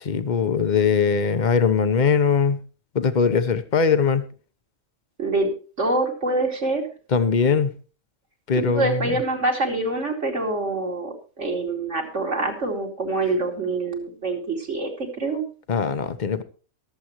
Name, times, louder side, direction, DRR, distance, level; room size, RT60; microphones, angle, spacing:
voice 1, 0.1-2.6 2.9-4.3 7.1-7.7 8.5-9.0 15.7-16.4, left 5 dB, 40° left, 11 dB, 1.0 m, -21 dB
voice 2, 5.2-5.5 5.8-6.9 8.5-14.9 15.2-15.4, right 2 dB, 60° right, 1 dB, 3.0 m, -25 dB
23.5 x 7.8 x 3.0 m, 0.36 s
omnidirectional pair, 1.4 m